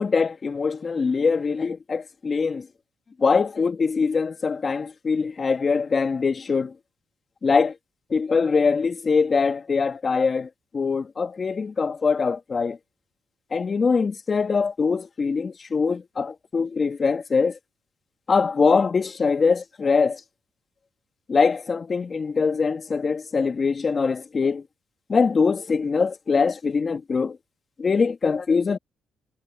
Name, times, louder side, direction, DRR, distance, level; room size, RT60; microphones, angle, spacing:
voice 1, 0.0-2.7 3.2-6.7 7.4-7.7 8.1-12.8 13.5-17.6 18.3-20.2 21.3-24.6 25.1-27.4 27.8-28.8, left 5 dB, 40° left, 1.8 m, -23 dB
cardioid pair, 90°, 0 cm